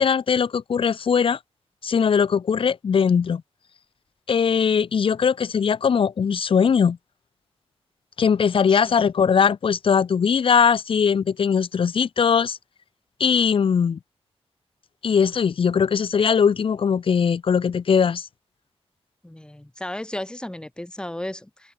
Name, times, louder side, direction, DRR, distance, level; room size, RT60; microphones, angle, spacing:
voice 1, 0.0-1.4 1.8-3.4 4.3-7.0 8.2-12.6 13.2-14.0 15.0-18.3, left 6 dB, 55° left, 1.1 m, -20 dB
voice 2, 19.2-21.7, left 1 dB, 10° left, 1.9 m, -34 dB
open air
wide cardioid pair, 155°, 11 cm